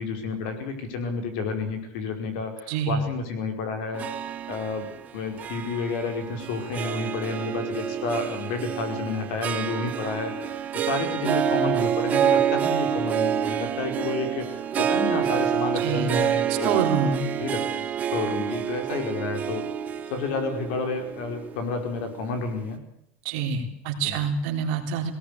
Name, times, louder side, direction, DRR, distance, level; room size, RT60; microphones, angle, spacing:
voice 1, 0.0-4.0 4.5-4.9 5.1-17.1 17.4-17.8 18.1-19.6 20.1-22.8 24.0-24.1, left 4 dB, 60° left, 6 dB, 5.0 m, -30 dB
voice 2, 2.7-3.0 15.8-16.2 16.6-17.3 23.2-25.1, right 6 dB, 55° right, 3 dB, 3.8 m, -26 dB
Harp, 3.9-22.4, right 9 dB, 25° right, 1.1 m, -28 dB
19.0 x 18.0 x 8.4 m, 0.75 s
supercardioid pair, 170°, 7 cm